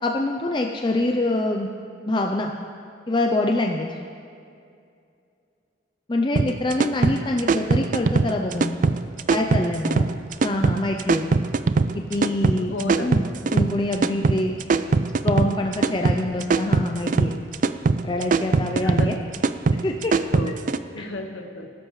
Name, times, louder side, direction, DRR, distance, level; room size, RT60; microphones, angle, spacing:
voice 1, 0.0-1.7 2.1-2.5 3.1-3.9 6.1-8.7 9.3-10.0 10.4-11.3 11.9-13.2 13.5-14.5 15.2-17.4 18.0-19.2 19.8-20.1 21.0-21.1, left 2 dB, 25° left, 2 dB, 0.5 m, -25 dB
sound 1, 6.4-20.8, right 4 dB, 45° right, 0.4 m, -21 dB
voice 2, 12.6-13.2 18.8-19.1 20.3-21.7, left 2 dB, 85° left, 5 dB, 1.1 m, -33 dB
19.5 x 12.0 x 3.2 m, 2.4 s
head